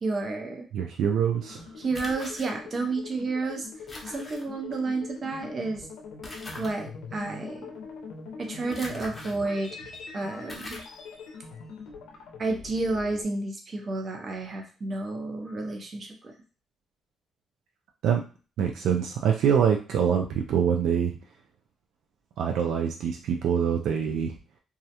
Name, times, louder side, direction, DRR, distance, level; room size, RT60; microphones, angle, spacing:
voice 1, 0.0-0.7 1.8-3.7 4.0-5.9 6.6-7.7 8.4-9.8 10.1-10.8 12.4-16.3, right 3 dB, 40° right, 3 dB, 0.6 m, -31 dB
voice 2, 0.7-1.7 18.0-18.2 18.6-21.2 22.4-24.4, right 8 dB, 80° right, 2 dB, 0.3 m, -25 dB
sound 1, 1.3-13.2, left 4 dB, 85° left, 0.5 m, -43 dB
sound 2, 1.9-2.5 3.9-4.4 6.2-6.7 8.7-9.4 9.9-10.0 10.5-10.9, left 1 dB, 20° left, 0.7 m, -41 dB
2.3 x 2.1 x 2.8 m, 0.35 s
cardioid pair, 90°, 0 cm